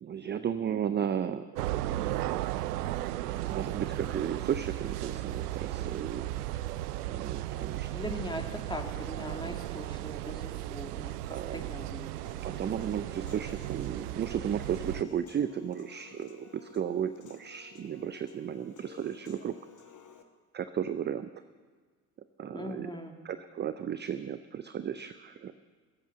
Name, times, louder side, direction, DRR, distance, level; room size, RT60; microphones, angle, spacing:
voice 1, 0.0-1.5 3.5-6.3 7.1-7.9 11.3-11.7 12.4-19.5 20.5-21.3 22.4-23.0 23.2-25.5, right 8 dB, 25° right, 12 dB, 0.5 m, -34 dB
sound 1, 1.6-15.0, right 15 dB, 75° right, 0.6 m, -35 dB
voice 2, 7.9-12.1 22.5-23.1, left 1 dB, 10° left, 2 dB, 2.1 m, -40 dB
Human voice / Piano, 12.2-20.2, left 7 dB, 40° left, 1.6 m, -55 dB
17.5 x 7.9 x 7.7 m, 1.5 s
figure-of-eight pair, 55°, 46 cm